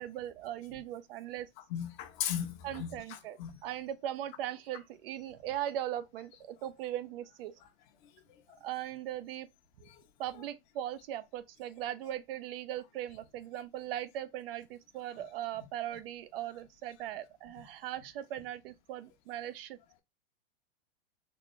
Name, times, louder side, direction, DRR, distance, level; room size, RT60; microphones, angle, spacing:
voice 1, 0.0-1.5 2.6-7.6 8.6-9.5 10.2-19.8, right 12 dB, 70° right, 0.6 m, -39 dB
voice 2, 1.7-3.6 10.3-10.5, left 10 dB, 55° left, 0.8 m, -37 dB
4.2 x 2.2 x 3.2 m
supercardioid pair, 125°, 29 cm